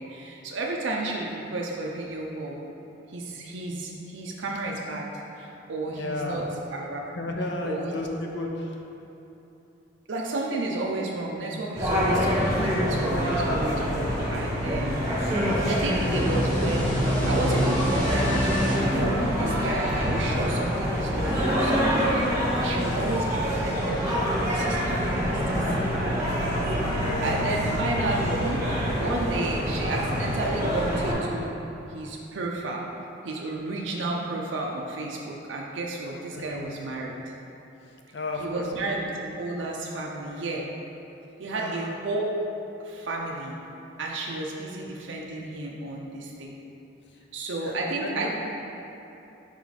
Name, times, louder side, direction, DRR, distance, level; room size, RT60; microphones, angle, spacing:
voice 1, 0.0-2.6 3.1-7.0 7.6-7.9 8.3-8.5 10.1-15.0 15.7-26.2 26.5-28.6 29.0-31.5 31.9-32.8 33.2-37.2 38.4-40.6 41.4-42.4 42.8-43.6 44.0-46.6 47.3-48.3, right 2 dB, 75° right, -2 dB, 0.5 m, -32 dB
voice 2, 5.9-6.5 7.1-8.7 12.1-12.2 25.2-25.9 27.0-27.5 36.3-36.7 38.1-39.0 41.5-41.9 47.6-48.3, left 2 dB, 65° left, 1 dB, 0.6 m, -33 dB
sound 1, 11.7-31.1, equal, 15° right, 1.2 m, -26 dB
sound 2, 15.3-20.7, equal, 5° left, 1.0 m, -29 dB
5.4 x 4.7 x 4.0 m, 3.0 s
head